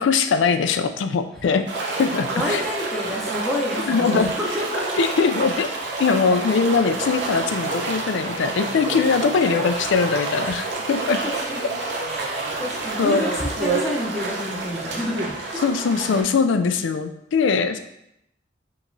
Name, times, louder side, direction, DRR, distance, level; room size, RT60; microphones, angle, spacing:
voice 1, 0.0-1.7 2.0-2.6 3.9-4.3 5.0-5.7 6.0-11.2 13.0-13.2 15.6-17.8, left 5 dB, 75° left, 9 dB, 0.3 m, -21 dB
sound 1, 1.7-16.2, right 3 dB, 65° right, 0.7 m, -28 dB
voice 2, 2.3-5.0 6.3-6.4 9.4-9.5 10.4-10.6 11.2-11.7 12.1-15.6, left 1 dB, ahead, -5 dB, 0.7 m, -29 dB
5.0 x 2.9 x 2.6 m, 0.81 s
head